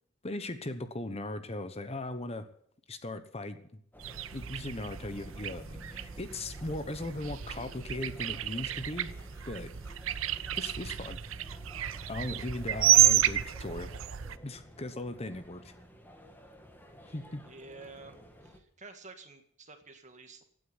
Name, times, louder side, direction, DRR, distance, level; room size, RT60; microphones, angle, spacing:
voice 1, 0.2-2.5 2.9-3.6 4.3-9.7 10.5-11.2 12.1-13.9 14.4-15.7 17.1-17.4, left 2 dB, 30° left, 10 dB, 1.1 m, -38 dB
sound 1, 3.9-18.6, equal, 10° left, 2.0 m, -53 dB
sound 2, 4.0-14.4, right 12 dB, 75° right, 0.6 m, -30 dB
voice 2, 17.4-20.4, right 3 dB, 35° right, 7 dB, 1.9 m, -50 dB
16.5 x 9.2 x 8.1 m, 0.63 s
head